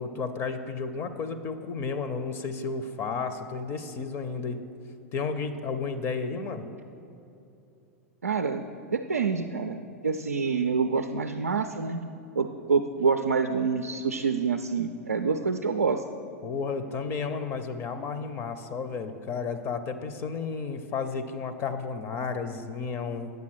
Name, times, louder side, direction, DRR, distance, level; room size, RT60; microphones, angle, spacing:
voice 1, 0.0-4.6 5.1-6.6 16.4-23.3, left 5 dB, 30° left, 9 dB, 0.6 m, -32 dB
voice 2, 8.2-8.6 8.9-12.0 12.4-16.0, right 5 dB, 75° right, 6 dB, 0.4 m, -27 dB
9.3 x 7.3 x 6.1 m, 2.8 s
figure-of-eight pair, 95°, 8 cm